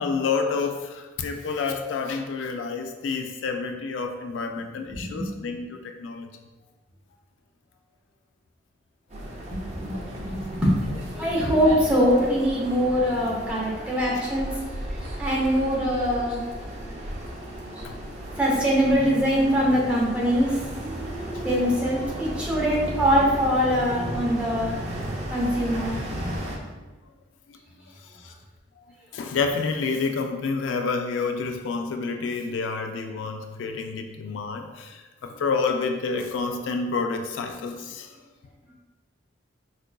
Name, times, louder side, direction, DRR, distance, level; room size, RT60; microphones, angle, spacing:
voice 1, 0.0-6.3 14.1-14.2 17.8-18.0 21.3-21.4 27.5-27.6 27.9-28.3 28.8-28.9 29.1-38.2, left 4 dB, 75° left, 5 dB, 0.3 m, -29 dB
voice 2, 4.9-5.3 9.8-10.7 11.2-14.5 15.2-16.4 18.4-20.6 21.4-24.8 25.3-26.0, equal, 5° right, -6 dB, 0.8 m, -23 dB
sound 1, 9.1-26.6, right 1 dB, 35° right, 0.5 m, -34 dB
4.5 x 2.5 x 2.2 m, 1.2 s
head